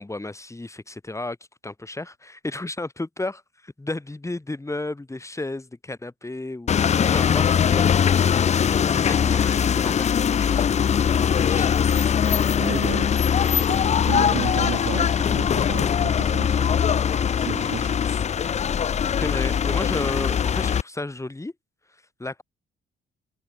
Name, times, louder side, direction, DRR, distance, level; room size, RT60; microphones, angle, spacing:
voice 1, 0.0-1.4 1.6-6.8 7.1-8.3 8.8-11.2 11.5-11.7 19.2-21.5 22.2-22.4, left 2 dB, 15° left, 4.2 m, -33 dB
sound 1, 6.7-20.8, left 8 dB, 35° left, 0.5 m, -21 dB
voice 2, 12.6-13.8 14.1-16.7 17.4-17.9, right 14 dB, 75° right, 1.0 m, -33 dB
cardioid pair, 90°, 20 cm